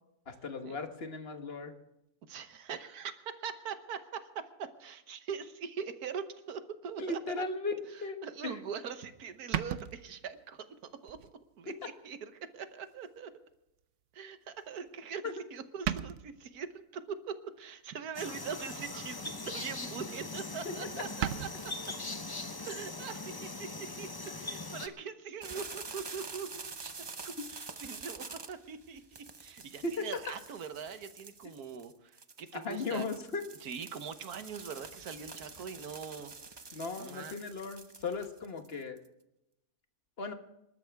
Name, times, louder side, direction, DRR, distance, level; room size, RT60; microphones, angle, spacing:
voice 1, 0.3-1.7 7.0-8.2 8.4-8.6 15.2-15.3 20.6-20.7 29.8-30.1 32.6-33.4 36.7-39.0 40.2-40.3, left 3 dB, 40° left, 6 dB, 1.5 m, -36 dB
voice 2, 2.3-7.5 7.9-10.6 11.0-11.2 11.6-13.3 14.1-15.2 15.5-21.7 22.6-24.1 24.4-26.9 27.2-29.0 29.4-33.1 33.6-36.3 37.0-37.3, right 6 dB, 80° right, 10 dB, 1.6 m, -42 dB
sound 1, 8.7-8.8 9.5-10.4 11.1-11.3 11.8-11.9 13.2-13.3 14.9-15.3 15.6-15.7 15.8-16.5 18.4-18.9 19.3-19.5 19.9-20.0 20.2-20.3 20.5-20.6 21.0-21.5, right 10 dB, 60° right, 0.9 m, -36 dB
sound 2, 18.1-24.9, left 2 dB, 20° left, 0.6 m, -41 dB
sound 3, 25.4-39.1, right 4 dB, 40° right, 0.3 m, -47 dB
26.5 x 12.5 x 3.5 m, 0.88 s
omnidirectional pair, 1.6 m